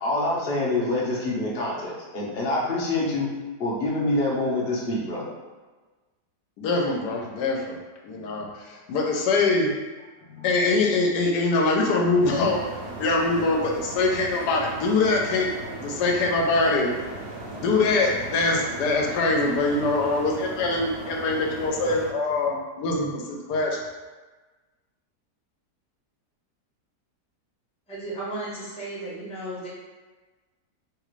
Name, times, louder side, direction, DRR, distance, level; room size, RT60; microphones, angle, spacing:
voice 1, 0.0-3.3 3.6-5.3, left 2 dB, 50° left, -5 dB, 0.7 m, -26 dB
voice 2, 6.6-7.8 8.0-9.7 10.3-12.7 13.0-15.5 15.8-16.9 17.5-23.8, left 3 dB, 80° left, 0 dB, 1.1 m, -23 dB
sound 1, 12.2-22.1, right 2 dB, 75° right, 1.2 m, -37 dB
voice 3, 27.9-29.7, right 2 dB, 5° left, -9 dB, 0.7 m, -34 dB
3.2 x 2.4 x 3.0 m, 1.3 s
omnidirectional pair, 1.8 m